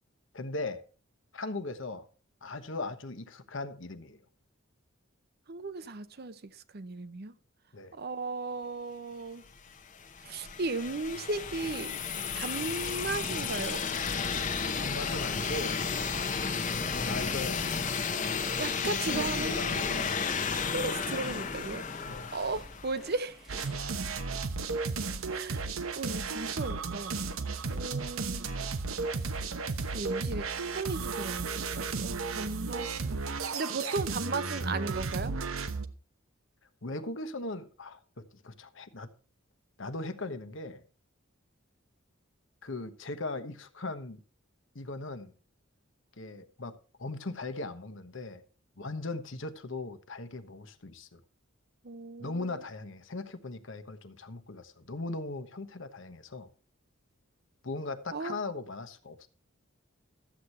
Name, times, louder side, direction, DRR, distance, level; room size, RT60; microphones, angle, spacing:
voice 1, 0.3-0.8 1.3-2.1 2.4-4.2 7.7-7.9 14.8-15.8 17.0-17.6 19.1-20.1 22.1-22.3 36.8-39.1 39.8-40.8 42.6-44.2 44.7-45.3 46.2-48.4 48.8-51.2 52.2-56.5 57.6-59.3, left 2 dB, 65° left, 1.1 m, -39 dB
voice 2, 5.5-7.4 7.9-9.4 10.2-12.0 12.3-13.8 18.6-20.1 20.5-21.9 22.3-23.5 25.3-25.7 25.9-27.1 27.7-28.5 29.9-33.2 33.5-35.4 51.8-52.6 58.1-58.4, right 3 dB, 50° right, 0.7 m, -36 dB
sound 1, 9.5-23.3, left 5 dB, 40° left, 0.9 m, -33 dB
sound 2, 19.0-24.1, equal, ahead, 1.0 m, -52 dB
sound 3, 23.5-35.9, right 4 dB, 80° right, 1.0 m, -34 dB
13.0 x 8.2 x 4.3 m
head